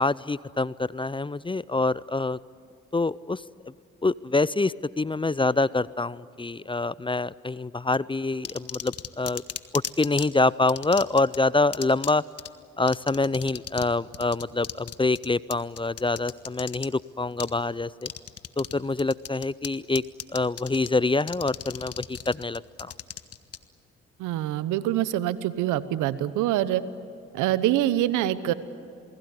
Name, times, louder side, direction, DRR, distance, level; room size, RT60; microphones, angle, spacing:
voice 1, 0.0-2.4 2.9-3.4 4.0-9.4 9.7-12.2 12.8-18.1 18.6-20.0 20.3-22.9, left 3 dB, 15° left, 20 dB, 0.6 m, -26 dB
sound 1, 8.4-10.3 10.7-11.4 11.7-12.1 12.4-12.5 12.9-13.9 14.1-16.9 17.4-17.5 18.0-18.7 19.0-19.7 20.0-20.9 21.2-23.6, left 8 dB, 50° left, 1.4 m, -35 dB
voice 2, 24.2-26.8 27.3-28.5, right 13 dB, 80° right, 15 dB, 1.1 m, -25 dB
28.5 x 20.0 x 9.7 m, 2.5 s
hypercardioid pair, 50°, 30 cm